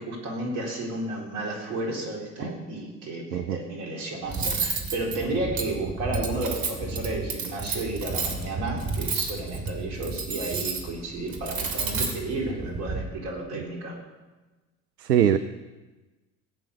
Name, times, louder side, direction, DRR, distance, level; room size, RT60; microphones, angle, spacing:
voice 1, 0.0-14.0, right 2 dB, 70° right, 0 dB, 4.2 m, -32 dB
Cutlery silverware, 4.3-13.0, right 4 dB, 45° right, 3.2 m, -31 dB
voice 2, 15.0-15.4, right 10 dB, 90° right, 11 dB, 0.7 m, -21 dB
17.0 x 9.0 x 6.6 m, 1.2 s
hypercardioid pair, 60°, 46 cm